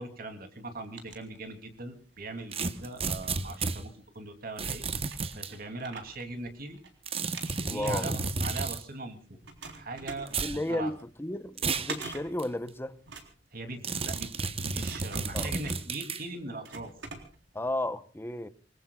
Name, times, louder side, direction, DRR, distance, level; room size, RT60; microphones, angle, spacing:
voice 1, 0.0-6.8 7.6-9.4 9.7-10.9 13.5-16.9, right 2 dB, 55° right, 2.9 m, -40 dB
sound 1, 0.6-1.9 2.3-4.0 4.6-4.7 5.0-6.9 7.2-9.1 9.4-17.7, right 4 dB, 85° right, 3.7 m, -46 dB
sound 2, 2.5-3.8 4.6-5.5 7.1-8.8 10.3-10.6 11.6-11.9 12.4-12.5 13.8-16.2, right 4 dB, 35° right, 1.0 m, -32 dB
voice 2, 7.7-8.2 10.4-13.0 15.3-15.5 17.5-18.5, left 1 dB, 15° left, 0.8 m, -33 dB
27.5 x 21.0 x 2.3 m
head